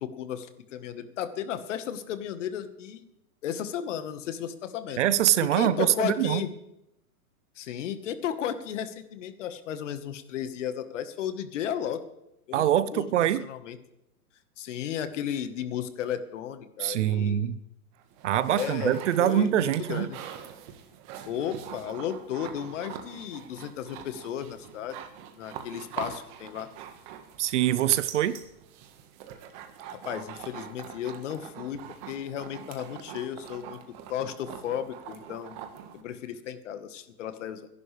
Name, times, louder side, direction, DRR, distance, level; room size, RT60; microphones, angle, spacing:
voice 1, 0.0-3.1 3.4-5.0 5.5-6.5 7.5-12.0 12.5-13.8 14.6-17.5 18.5-20.2 21.2-25.0 25.3-26.7 29.9-33.8 34.1-35.6 35.9-37.7, left 9 dB, 55° left, 10 dB, 1.4 m, -34 dB
voice 2, 5.0-6.4 12.5-13.4 16.8-17.6 18.2-20.1 27.4-28.4, right 11 dB, 50° right, 16 dB, 0.7 m, -24 dB
sound 1, 18.0-36.0, right 9 dB, 35° right, 1.4 m, -44 dB
25.5 x 11.0 x 3.3 m, 0.85 s
hypercardioid pair, 155°, 45 cm